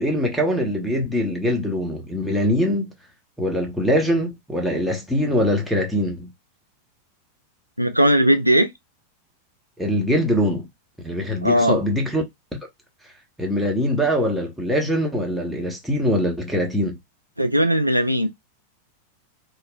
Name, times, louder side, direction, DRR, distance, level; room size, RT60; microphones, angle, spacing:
voice 1, 0.0-2.9 3.4-6.3 9.8-10.7 11.0-12.2 13.4-16.9, equal, ahead, 0.8 m, -22 dB
voice 2, 7.8-8.7 11.4-11.8 17.4-18.3, equal, 90° right, 0.3 m, -18 dB
2.9 x 2.0 x 2.2 m
figure-of-eight pair, 90°, 0 cm